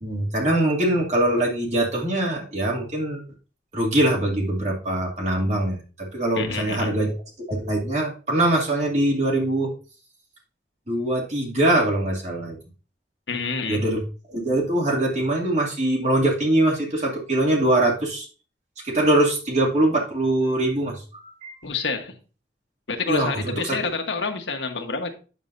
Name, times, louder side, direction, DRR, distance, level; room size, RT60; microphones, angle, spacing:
voice 1, 0.0-3.2 3.7-7.1 7.5-9.7 10.9-12.6 13.7-14.0 14.3-18.3 18.8-21.0 21.4-21.5 23.1-23.8, right 1 dB, 40° right, 2.4 m, -22 dB
voice 2, 6.3-7.0 13.3-13.8 21.6-22.2 22.9-25.1, left 4 dB, 80° left, 1.3 m, -28 dB
9.1 x 7.1 x 2.6 m
head